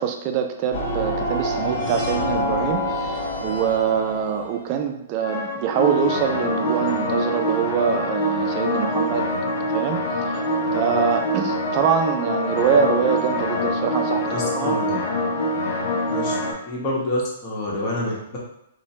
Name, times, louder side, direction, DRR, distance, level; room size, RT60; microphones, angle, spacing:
voice 1, 0.0-9.3 9.7-10.4 10.7-14.8, right 7 dB, 40° right, 5 dB, 0.4 m, -24 dB
sound 1, 0.7-4.6 5.2-16.5, left 1 dB, 55° left, 0.6 m, -25 dB
voice 2, 14.2-15.0 16.1-16.3 16.7-18.4, left 1 dB, 35° left, -5 dB, 1.0 m, -27 dB
3.0 x 2.1 x 2.7 m, 0.79 s
hypercardioid pair, 125°, 0 cm